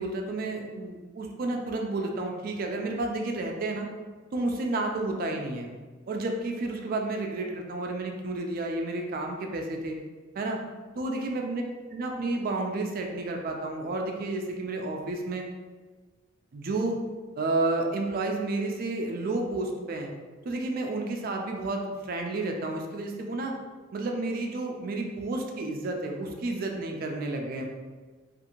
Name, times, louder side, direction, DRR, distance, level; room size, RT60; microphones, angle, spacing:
voice 1, 0.0-3.9 4.3-5.7 6.1-10.0 10.4-10.6 11.0-11.6 11.9-15.4 16.5-17.0 17.4-20.1 20.5-23.5 23.9-27.6, right 2 dB, 45° right, 2 dB, 0.3 m, -31 dB
2.6 x 2.5 x 2.8 m, 1.4 s
head